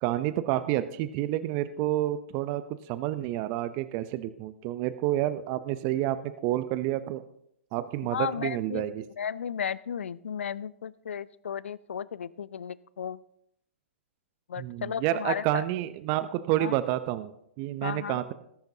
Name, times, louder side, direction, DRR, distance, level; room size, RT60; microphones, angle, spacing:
voice 1, 0.0-7.2 7.7-9.0 14.6-17.3 17.6-18.3, right 14 dB, 40° right, 13 dB, 0.6 m, -29 dB
voice 2, 8.1-13.2 14.5-15.6 16.6-16.8 17.8-18.2, left 7 dB, 75° left, 20 dB, 0.5 m, -34 dB
19.0 x 10.5 x 2.8 m, 0.74 s
hypercardioid pair, 115°, 7 cm